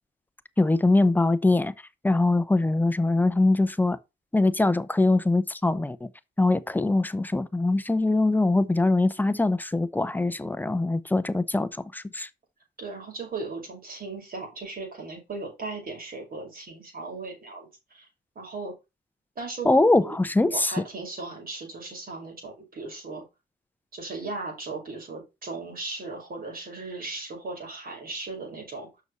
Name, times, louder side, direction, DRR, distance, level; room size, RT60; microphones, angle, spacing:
voice 1, 0.6-1.7 2.0-4.0 4.3-6.1 6.4-12.3 19.6-20.7, left 2 dB, 10° left, 0.7 m, -22 dB
voice 2, 12.8-18.0 18.4-18.7 19.4-23.2 23.9-28.9, right 3 dB, 45° right, 5.7 m, -37 dB
6.9 x 6.1 x 4.1 m
cardioid pair, 90°, 20 cm